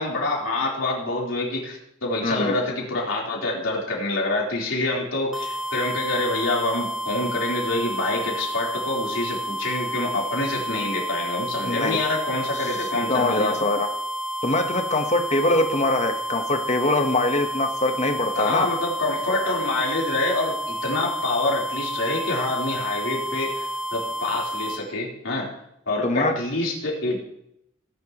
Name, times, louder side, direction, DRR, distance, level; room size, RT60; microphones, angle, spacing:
voice 1, 0.0-13.5 18.3-25.5 25.9-27.2, left 2 dB, 80° left, -3 dB, 3.8 m, -26 dB
voice 2, 2.2-2.6 11.6-12.0 13.1-13.9 14.4-18.7 26.0-26.3, left 2 dB, 35° left, 5 dB, 1.2 m, -23 dB
sound 1, 5.3-24.8, right 1 dB, ahead, 1.0 m, -30 dB
18.0 x 10.5 x 3.0 m, 0.78 s
head